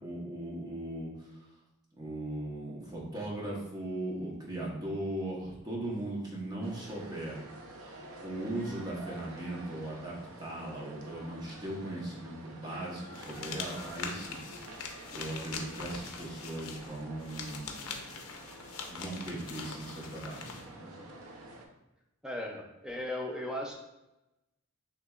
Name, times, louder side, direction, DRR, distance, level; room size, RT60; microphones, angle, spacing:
voice 1, 0.0-1.4 2.0-7.4 8.2-14.4 15.1-18.0 18.9-21.0, right 1 dB, 20° right, -4 dB, 1.1 m, -38 dB
sound 1, 6.6-21.7, right 1 dB, 80° right, 0.7 m, -49 dB
sound 2, 13.1-20.7, left 5 dB, 75° left, 0.6 m, -43 dB
voice 2, 22.2-23.7, left 1 dB, 5° right, 0 dB, 0.4 m, -37 dB
6.3 x 2.9 x 2.4 m, 0.96 s
head